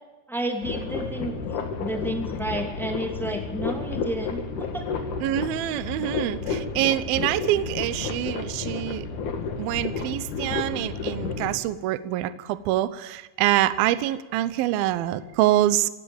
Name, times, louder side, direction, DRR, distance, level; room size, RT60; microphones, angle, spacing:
voice 1, 0.3-1.4 1.8-4.8, right 1 dB, ahead, 3 dB, 0.7 m, -31 dB
sound 1, 0.6-11.6, left 4 dB, 50° left, 2.8 m, -31 dB
voice 2, 5.2-9.1 9.6-15.9, right 14 dB, 85° right, 14 dB, 2.1 m, -25 dB
17.5 x 17.0 x 8.8 m, 1.1 s
omnidirectional pair, 5.4 m